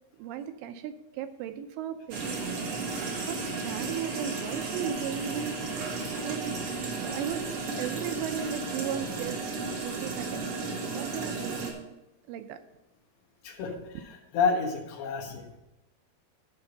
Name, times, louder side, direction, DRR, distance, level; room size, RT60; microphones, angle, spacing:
voice 1, 0.2-6.6 7.0-10.6 10.9-11.9 12.3-12.6, right 9 dB, 90° right, 9 dB, 2.9 m, -37 dB
sound 1, 2.1-11.7, right 3 dB, 55° right, 1.5 m, -34 dB
voice 2, 13.4-14.0 14.3-15.6, left 5 dB, 85° left, 0 dB, 3.7 m, -30 dB
11.5 x 4.9 x 6.6 m, 0.95 s
omnidirectional pair, 4.9 m